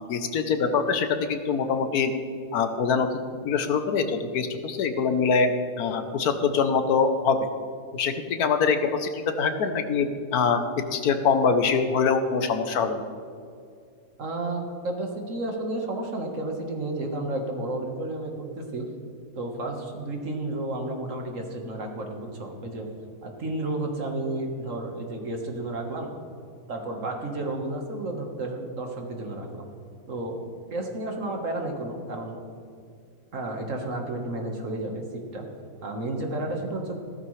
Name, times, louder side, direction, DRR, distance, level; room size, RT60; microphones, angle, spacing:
voice 1, 0.1-2.1 2.5-3.1 3.4-5.5 5.8-7.5 7.9-10.6 10.9-13.1, left 5 dB, 85° left, 8 dB, 1.4 m, -24 dB
voice 2, 14.2-18.9 19.4-22.9 23.2-26.1 26.7-29.7 30.1-30.4 30.7-32.4 33.3-35.4 35.8-37.0, right 2 dB, 55° right, 2 dB, 1.8 m, -32 dB
15.0 x 13.0 x 3.3 m, 2.3 s
omnidirectional pair, 1.6 m